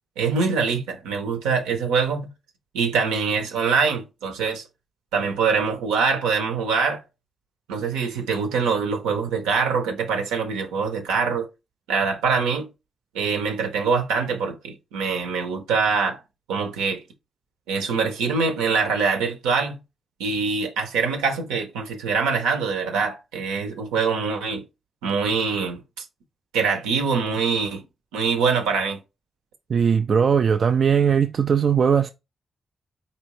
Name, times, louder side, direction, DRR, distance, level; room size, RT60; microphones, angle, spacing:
voice 1, 0.2-2.3 2.7-4.6 5.1-7.0 7.7-11.5 11.9-12.7 13.1-16.2 16.5-17.0 17.7-19.8 20.2-24.6 25.0-26.0 26.5-27.8 28.1-29.0, right 5 dB, 90° right, 0.9 m, -24 dB
voice 2, 29.7-32.1, right 7 dB, 60° right, 0.3 m, -19 dB
4.2 x 3.0 x 3.2 m
supercardioid pair, 45°, 0 cm